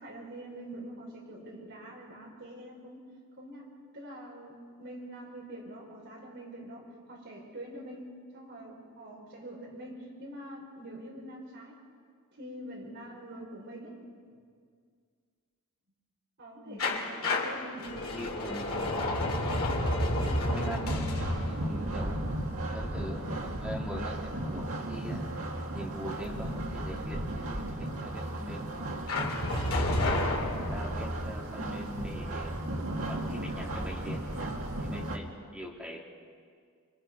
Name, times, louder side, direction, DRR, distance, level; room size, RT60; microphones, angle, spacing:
voice 1, 0.0-3.0 3.4-8.1 8.3-11.8 12.3-13.9 16.4-18.0, right 1 dB, 55° right, -2 dB, 5.4 m, -45 dB
sound 1, 16.8-23.6 29.1-31.3, left 1 dB, 70° left, 2.7 m, -31 dB
voice 2, 17.8-18.7 20.4-22.2 22.7-25.3 25.7-28.9 29.7-30.3 30.6-32.5 33.1-34.5 34.8-36.0, equal, 5° right, -3 dB, 2.5 m, -42 dB
sound 2, 18.5-35.2, right 1 dB, 75° right, 2.2 m, -36 dB
25.0 x 24.0 x 5.4 m, 2.1 s
head